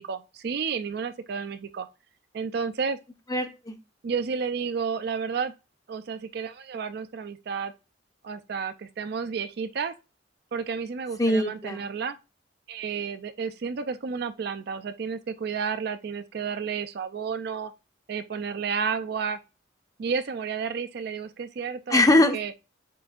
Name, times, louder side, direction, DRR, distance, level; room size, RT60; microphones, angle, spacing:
voice 1, 0.0-1.9 2.3-3.0 4.0-5.5 5.9-7.7 8.2-9.9 10.5-12.2 12.7-17.7 18.1-19.4 20.0-22.0 22.3-22.5, right 6 dB, 60° right, 0.4 m, -31 dB
voice 2, 3.3-3.7 11.2-11.9 21.9-22.5, left 1 dB, 20° left, 0.7 m, -22 dB
7.5 x 2.6 x 2.4 m
head